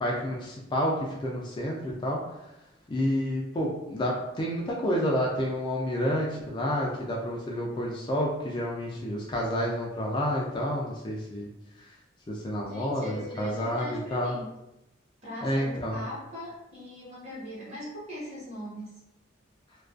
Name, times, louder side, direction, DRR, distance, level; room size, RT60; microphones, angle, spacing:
voice 1, 0.0-2.2 2.9-11.5 11.8-11.9 12.3-14.4 15.4-16.0, equal, 25° left, -3 dB, 0.3 m, -29 dB
voice 2, 12.6-14.5 15.2-19.0, equal, 35° right, -7 dB, 1.1 m, -40 dB
2.4 x 2.2 x 2.3 m, 0.89 s
head